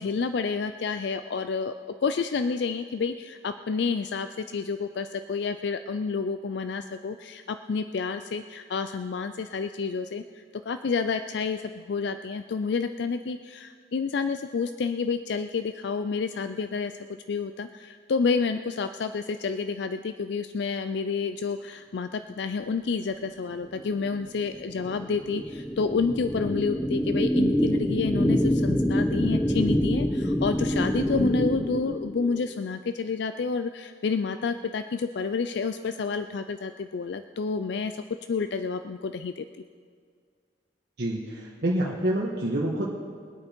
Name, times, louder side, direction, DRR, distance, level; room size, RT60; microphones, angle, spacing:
voice 1, 0.0-1.8 2.0-38.0 38.3-39.4, left 5 dB, 65° left, 10 dB, 0.4 m, -29 dB
sound 1, 23.7-32.5, equal, 5° left, 0.4 m, -26 dB
voice 2, 41.0-42.9, right 1 dB, 60° right, -3 dB, 1.4 m, -27 dB
22.5 x 8.7 x 4.4 m, 2.1 s
head